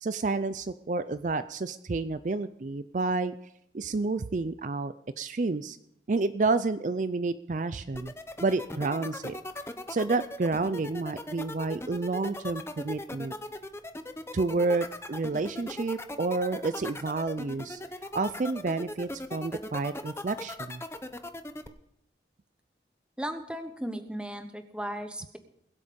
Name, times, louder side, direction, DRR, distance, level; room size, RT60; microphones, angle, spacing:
voice 1, 0.0-3.4 3.7-5.8 6.1-8.1 8.4-9.4 9.9-13.3 14.3-17.8 18.1-20.8, right 3 dB, 45° right, 12 dB, 0.4 m, -30 dB
sound 1, 7.9-21.7, left 1 dB, 15° left, 0.7 m, -38 dB
voice 2, 23.2-25.4, equal, 5° right, 8 dB, 1.1 m, -36 dB
21.5 x 8.3 x 5.2 m, 0.76 s
head